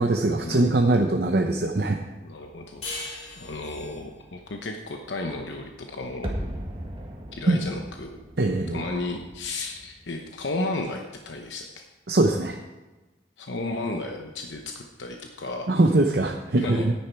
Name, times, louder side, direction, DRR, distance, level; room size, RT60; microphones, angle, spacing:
voice 1, 0.0-2.0 7.5-7.6 8.4-8.8 12.1-12.6 15.7-16.9, right 2 dB, 60° right, 3 dB, 0.7 m, -22 dB
voice 2, 2.2-3.1 3.4-6.3 7.4-8.2 8.7-11.8 13.4-15.7 16.6-16.9, left 2 dB, 85° left, 3 dB, 0.9 m, -33 dB
sound 1, 2.8-6.0, left 2 dB, 35° left, 2.9 m, -40 dB
sound 2, 6.2-11.2 11.4-11.5, equal, 30° right, 1.8 m, -38 dB
10.0 x 10.0 x 4.6 m, 1.1 s
head